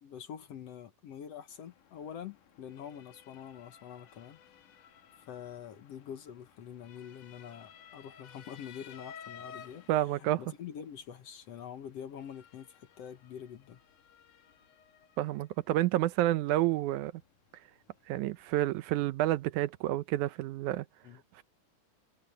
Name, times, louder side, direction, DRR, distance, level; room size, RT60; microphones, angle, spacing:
voice 1, 0.0-4.4 5.3-9.8 10.2-13.8 21.0-21.2, left 8 dB, 60° left, 2.0 m, -45 dB
Motor vehicle (road) / Siren, 1.5-18.9, left 8 dB, 80° left, 3.0 m, -56 dB
voice 2, 9.9-10.4 15.2-17.1 18.1-20.9 21.4-21.5, right 15 dB, 80° right, 2.0 m, -29 dB
omnidirectional pair, 3.6 m